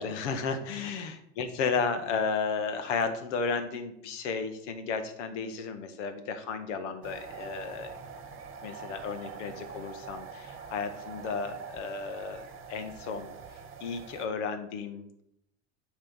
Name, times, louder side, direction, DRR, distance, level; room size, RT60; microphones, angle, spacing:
voice 1, 0.0-7.9 8.6-13.3 13.8-15.2, left 5 dB, 70° left, 9 dB, 1.2 m, -33 dB
sound 1, 7.0-14.3, right 5 dB, 35° right, 1.1 m, -44 dB
8.7 x 3.2 x 5.5 m, 0.76 s
hypercardioid pair, 95°, 37 cm